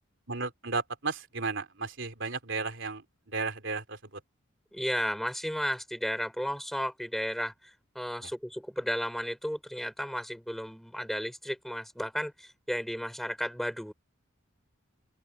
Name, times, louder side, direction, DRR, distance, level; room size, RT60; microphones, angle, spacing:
voice 1, 0.3-3.0 3.3-4.0, right 4 dB, 60° right, 3.5 m, -33 dB
voice 2, 4.7-13.9, equal, ahead, 4.0 m, -34 dB
open air
head